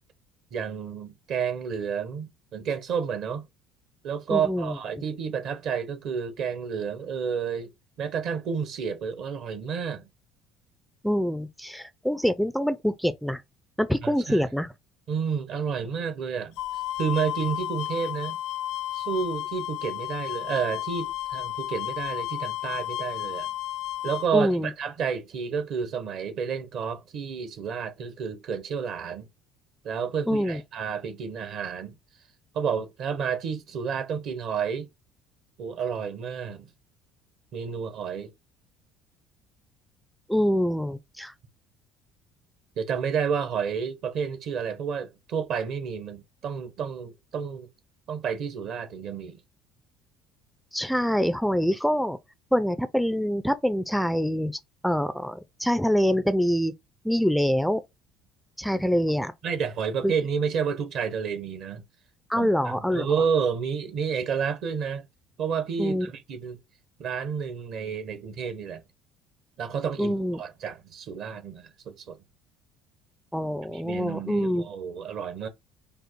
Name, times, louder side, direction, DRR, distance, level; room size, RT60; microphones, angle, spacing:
voice 1, 0.5-3.5 4.0-7.7 8.0-10.1 14.0-14.5 15.1-16.5 17.0-18.4 18.9-23.5 24.0-29.3 29.8-31.9 32.5-34.9 35.6-36.7 37.5-38.3 42.8-47.7 48.1-49.4 59.4-61.8 62.4-65.0 65.4-66.6 67.0-68.8 69.6-72.2 73.7-75.5, right 6 dB, 60° right, 1.1 m, -30 dB
voice 2, 4.3-4.7 11.0-13.4 13.8-14.7 24.3-24.7 30.3-30.6 40.3-41.3 50.7-52.2 52.5-54.6 54.8-56.7 57.0-57.8 58.6-59.3 60.0-60.1 62.3-63.0 65.8-66.1 70.0-70.4 73.3-74.6, equal, ahead, 0.5 m, -25 dB
sound 1, 16.6-24.3, left 14 dB, 70° left, 0.3 m, -32 dB
5.3 x 2.0 x 4.5 m
hypercardioid pair, 65°, 0 cm